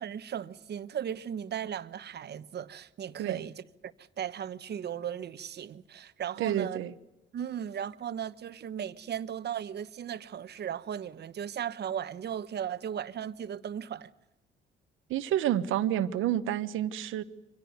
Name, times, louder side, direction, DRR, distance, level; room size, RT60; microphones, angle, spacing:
voice 1, 0.0-6.8 7.3-14.1, right 9 dB, 55° right, 1.1 m, -36 dB
voice 2, 6.4-6.9 15.1-17.2, right 11 dB, 85° right, 1.2 m, -29 dB
25.0 x 17.5 x 9.5 m
cardioid pair, 90°, 20 cm